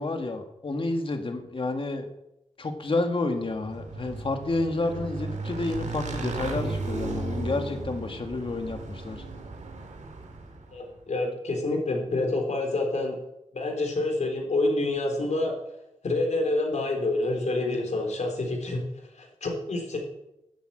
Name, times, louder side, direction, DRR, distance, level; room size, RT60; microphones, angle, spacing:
voice 1, 0.0-2.1 2.6-9.2, left 2 dB, 45° left, 5 dB, 1.9 m, -30 dB
Motorcycle / Engine, 3.5-10.8, right 3 dB, 80° right, 2.4 m, -35 dB
voice 2, 10.7-13.2 13.5-15.5 16.0-18.8 19.2-20.0, left 2 dB, 70° left, 2 dB, 3.7 m, -27 dB
11.5 x 8.4 x 8.9 m, 0.87 s
wide cardioid pair, 95°, 12 cm